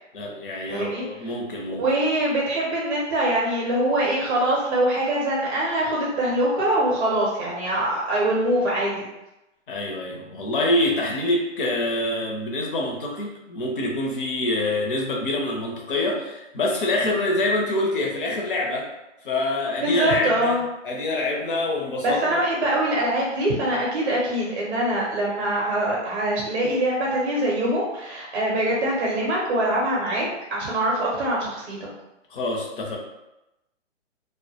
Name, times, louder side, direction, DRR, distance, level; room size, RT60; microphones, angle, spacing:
voice 1, 0.1-1.8 9.7-18.9 19.2-22.4 32.3-33.0, left 2 dB, 45° left, 0 dB, 0.6 m, -26 dB
voice 2, 0.7-1.0 1.7-9.0 19.8-20.6 22.0-31.9, right 1 dB, 40° right, -4 dB, 0.6 m, -23 dB
2.1 x 2.1 x 2.8 m, 0.93 s
hypercardioid pair, 150°, 38 cm